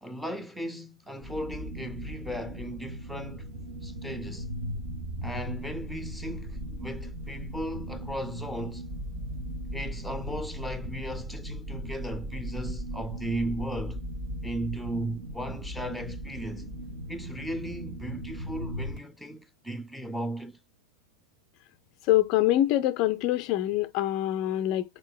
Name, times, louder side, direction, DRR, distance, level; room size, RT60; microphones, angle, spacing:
voice 1, 0.0-3.4 3.8-4.5 5.2-8.9 9.7-14.0 14.4-16.7 17.1-20.6, right 1 dB, ahead, 0.7 m, -36 dB
sound 1, 1.2-19.0, equal, 45° right, 1.5 m, -37 dB
voice 2, 22.0-24.8, left 14 dB, 40° left, 0.4 m, -25 dB
4.8 x 4.5 x 2.2 m
figure-of-eight pair, 90°, 0 cm